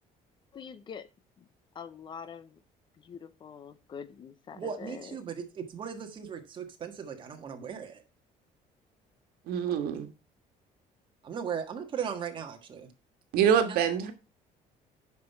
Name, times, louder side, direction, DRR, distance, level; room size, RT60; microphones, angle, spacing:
voice 1, 0.5-1.1 1.8-2.5 3.0-5.2, left 7 dB, 30° left, 0.6 m, -44 dB
voice 2, 4.5-8.0 11.2-12.9 13.7-13.8, right 7 dB, 30° right, 1.6 m, -37 dB
voice 3, 9.5-10.1 13.3-14.1, right 8 dB, 80° right, 1.5 m, -25 dB
9.4 x 5.8 x 4.5 m
cardioid pair, 170°, 15 cm